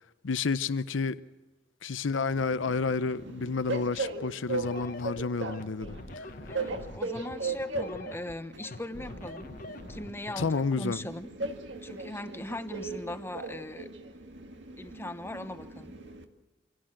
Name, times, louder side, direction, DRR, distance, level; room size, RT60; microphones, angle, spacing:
voice 1, 0.2-1.2 1.8-6.5 10.4-11.0, left 4 dB, 90° left, 0.7 m, -30 dB
Train, 2.3-16.2, right 3 dB, 70° right, 2.1 m, -38 dB
sound 1, 4.5-10.5, left 2 dB, 50° left, 1.1 m, -44 dB
voice 2, 6.5-9.5 9.9-11.3 11.8-13.9 14.8-15.9, left 1 dB, 15° left, 1.0 m, -39 dB
26.5 x 17.5 x 7.7 m
head